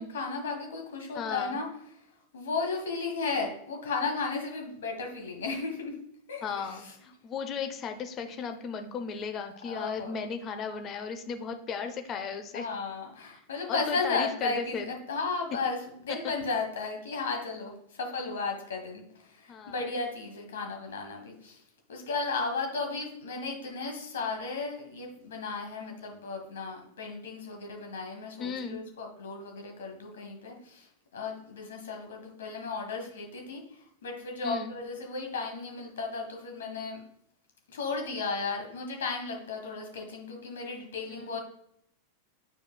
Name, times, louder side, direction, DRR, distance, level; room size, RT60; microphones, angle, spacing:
voice 1, 0.0-1.7 2.3-6.0 6.3-6.9 9.6-10.1 12.5-21.6 21.9-30.9 31.1-37.0 37.7-41.4, left 4 dB, 60° left, 2 dB, 1.5 m, -34 dB
voice 2, 1.1-1.6 6.4-12.7 13.7-14.9 19.5-19.9 28.4-28.8 34.4-34.7 41.2-41.4, left 6 dB, 30° left, 7 dB, 0.7 m, -36 dB
8.9 x 4.7 x 2.3 m, 0.71 s
figure-of-eight pair, 90°, 0 cm